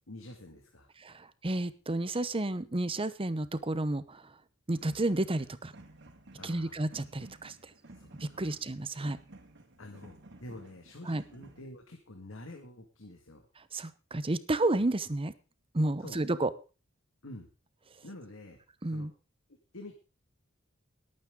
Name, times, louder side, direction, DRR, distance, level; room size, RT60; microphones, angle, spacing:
voice 1, 0.1-0.9 6.3-6.8 7.9-8.6 9.8-13.5 14.8-14.9 16.0-16.2 17.2-17.5 18.0-18.6 18.9-19.1 19.7-19.9, left 1 dB, 75° left, 4 dB, 2.1 m, -48 dB
voice 2, 1.0-4.3 4.7-5.7 6.4-7.6 8.2-9.2 11.1-11.2 13.7-15.3 15.7-16.5 18.8-19.1, right 2 dB, 25° right, 14 dB, 0.9 m, -31 dB
sound 1, 4.7-11.6, right 2 dB, 60° right, 2.4 m, -54 dB
20.5 x 8.9 x 3.7 m, 0.34 s
head